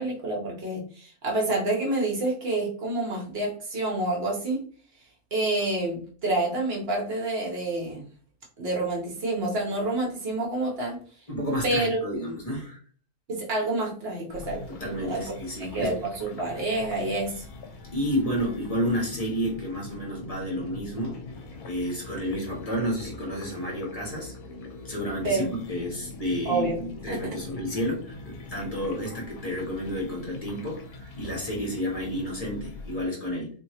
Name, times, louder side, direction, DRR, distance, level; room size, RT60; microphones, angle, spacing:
voice 1, 0.0-4.6 5.3-8.1 8.6-11.0 11.6-12.0 13.3-17.5 25.2-25.8 26.4-26.8 27.1-27.2, right 2 dB, 50° right, -1 dB, 0.9 m, -28 dB
voice 2, 11.3-12.8 14.7-15.9 17.9-21.2 21.6-24.3 24.8-33.5, equal, 30° left, -2 dB, 0.9 m, -30 dB
sound 1, 14.3-33.0, left 2 dB, 75° left, 1.0 m, -43 dB
2.9 x 2.7 x 2.8 m, 0.43 s
omnidirectional pair, 1.6 m